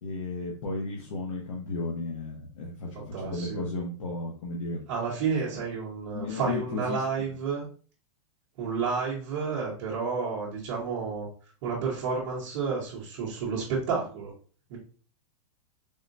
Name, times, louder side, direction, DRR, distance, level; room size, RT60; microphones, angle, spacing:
voice 1, 0.0-4.8 6.1-7.0, left 2 dB, 85° left, -2 dB, 0.8 m, -34 dB
voice 2, 2.9-3.7 4.9-7.7 8.6-11.3 11.6-14.3 14.7-14.8, right 5 dB, 30° right, -7 dB, 0.7 m, -31 dB
3.6 x 2.1 x 2.5 m, 0.41 s
supercardioid pair, 175°, 16 cm